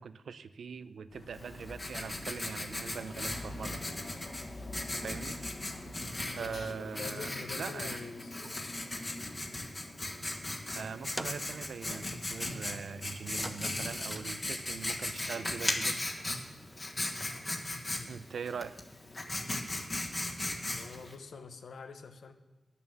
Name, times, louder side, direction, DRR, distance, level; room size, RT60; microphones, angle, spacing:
voice 1, 0.0-3.8 4.9-5.4 6.4-8.0 8.4-8.6 10.7-16.0 18.1-18.8, right 6 dB, 80° right, 14 dB, 0.5 m, -42 dB
sound 1, 1.1-6.7, left 2 dB, 50° left, 0.8 m, -48 dB
Writing, 1.3-21.1, left 1 dB, 25° left, 1.3 m, -37 dB
voice 2, 6.4-8.4 18.0-18.3 20.7-22.3, left 5 dB, 80° left, 7 dB, 0.9 m, -46 dB
sound 2, 10.9-17.7, right 1 dB, 15° right, 0.4 m, -49 dB
10.5 x 6.9 x 7.1 m, 1.2 s
wide cardioid pair, 170°, 0 cm